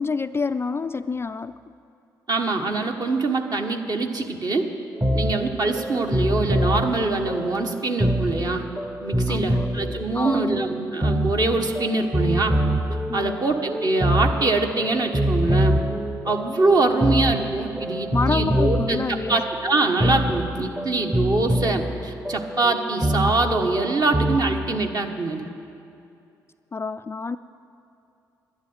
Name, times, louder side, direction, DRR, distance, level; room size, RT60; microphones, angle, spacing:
voice 1, 0.0-1.6 9.3-9.7 10.1-10.7 13.1-13.5 16.9-17.1 18.1-19.4 26.7-27.4, left 4 dB, 25° left, 12 dB, 0.3 m, -28 dB
voice 2, 2.3-4.7 5.1-8.6 9.0-12.6 13.1-15.8 16.2-25.5, right 3 dB, 40° right, 3 dB, 1.3 m, -24 dB
sound 1, 4.9-24.4, right 1 dB, 15° right, 1.0 m, -25 dB
11.0 x 10.5 x 8.0 m, 2.6 s
figure-of-eight pair, 45°, 10 cm